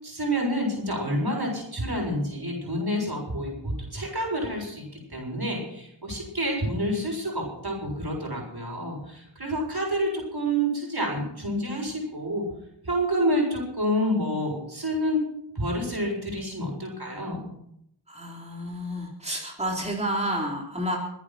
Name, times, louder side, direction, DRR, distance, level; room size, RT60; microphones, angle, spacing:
voice 1, 0.0-4.8 5.1-12.5 12.8-15.2 15.6-17.4, equal, 60° right, 0 dB, 7.0 m, -28 dB
voice 2, 18.1-21.0, equal, 15° right, -1 dB, 3.8 m, -30 dB
22.5 x 10.0 x 6.0 m, 0.75 s
wide cardioid pair, 45°, 43 cm